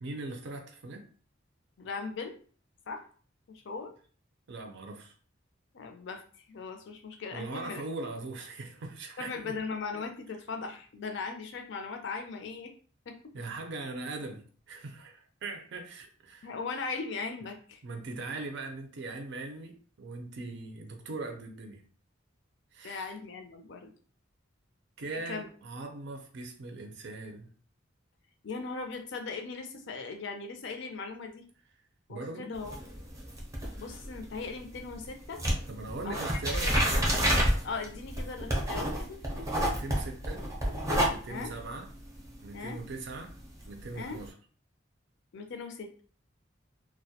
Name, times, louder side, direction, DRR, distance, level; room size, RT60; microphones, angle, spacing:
voice 1, 0.0-1.1 4.5-5.1 7.3-9.5 13.3-16.5 17.8-21.8 22.7-23.1 25.0-27.5 32.1-32.5 35.7-36.7 39.7-40.5 41.0-41.9 42.4-43.3 43.7-44.3, right 3 dB, 65° right, 4 dB, 0.5 m, -40 dB
voice 2, 1.8-2.3 2.9-3.0 3.5-3.9 5.7-6.2 6.5-7.8 9.2-12.7 13.1-13.2 16.4-17.8 22.8-23.9 25.1-25.5 28.4-31.4 32.1-32.8 33.8-35.4 36.0-36.2 36.6-37.3 37.6-39.2 41.3-41.6 42.5-42.8 44.0-44.2 45.3-45.9, left 4 dB, 65° left, 4 dB, 0.4 m, -39 dB
sound 1, 32.5-35.1 35.4-44.3, equal, 15° right, 0.5 m, -30 dB
2.2 x 2.0 x 2.7 m, 0.43 s
head